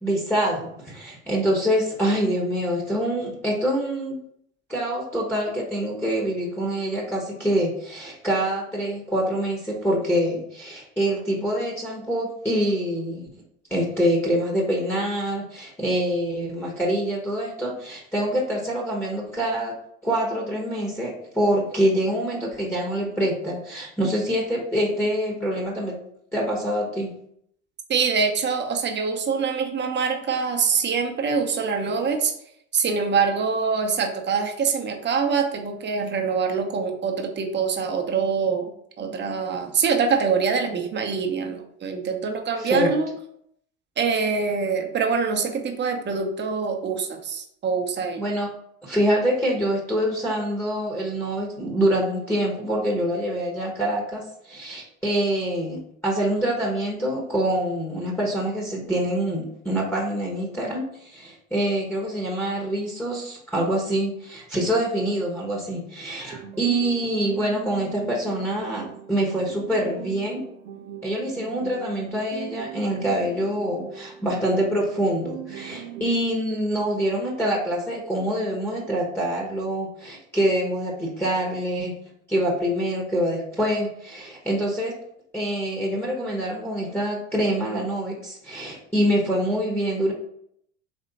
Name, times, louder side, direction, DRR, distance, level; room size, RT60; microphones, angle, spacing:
voice 1, 0.0-4.2 4.7-13.3 13.7-19.7 20.0-26.0 26.3-27.1 42.6-42.9 48.2-48.5 48.8-70.4 71.0-82.0 82.3-84.9 85.3-90.1, right 1 dB, 5° left, -4 dB, 1.1 m, -25 dB
voice 2, 27.9-32.3 32.7-43.1 44.0-48.2, right 5 dB, 25° right, 4 dB, 0.9 m, -24 dB
sound 1, 66.3-76.3, right 9 dB, 75° right, 0.7 m, -40 dB
4.2 x 3.0 x 4.0 m, 0.71 s
hypercardioid pair, 90°, 40 cm